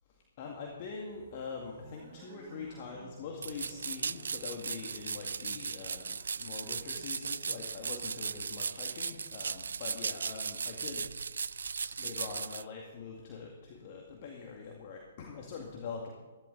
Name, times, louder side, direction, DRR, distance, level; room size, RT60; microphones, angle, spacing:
voice 1, 0.1-11.1 11.8-16.1, left 5 dB, 45° left, 1 dB, 2.1 m, -44 dB
sound 1, 1.0-7.9, right 5 dB, 45° right, 4.5 m, -57 dB
sound 2, 3.4-12.6, right 5 dB, 70° right, 0.3 m, -37 dB
15.0 x 15.0 x 4.0 m, 1.4 s
figure-of-eight pair, 125°, 0 cm